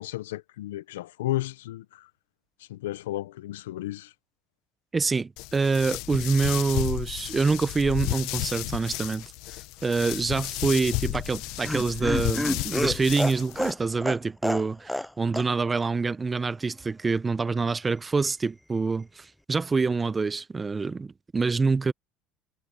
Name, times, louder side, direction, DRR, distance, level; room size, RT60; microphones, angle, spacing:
voice 1, 0.0-2.1 2.7-4.1, left 15 dB, 90° left, 0.8 m, -33 dB
voice 2, 4.9-9.2 9.8-21.9, right 4 dB, 20° right, 1.1 m, -26 dB
sound 1, 5.4-13.7, left 21 dB, 70° left, 1.2 m, -33 dB
Laughter, 11.1-15.1 15.3-15.5 15.8-15.9, left 1 dB, 5° left, 0.6 m, -29 dB
supercardioid pair, 90°, 0 cm